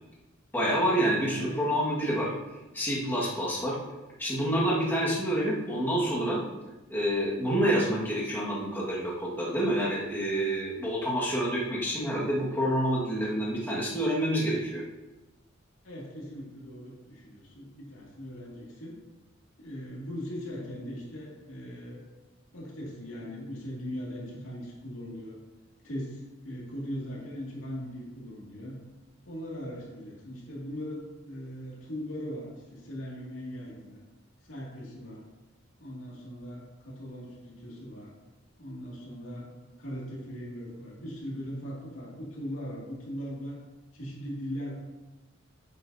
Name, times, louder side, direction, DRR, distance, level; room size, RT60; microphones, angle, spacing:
voice 1, 0.5-2.3 2.7-3.7 4.2-6.4 6.9-14.8, equal, 10° left, -6 dB, 1.7 m, -28 dB
voice 2, 15.8-19.0 19.6-22.0 22.5-25.4 25.8-28.8 29.3-34.0 34.4-35.3 35.8-38.1 38.6-39.5 39.8-43.6 43.9-44.8, equal, 80° left, -4 dB, 2.3 m, -39 dB
8.8 x 8.2 x 2.7 m, 1.1 s
head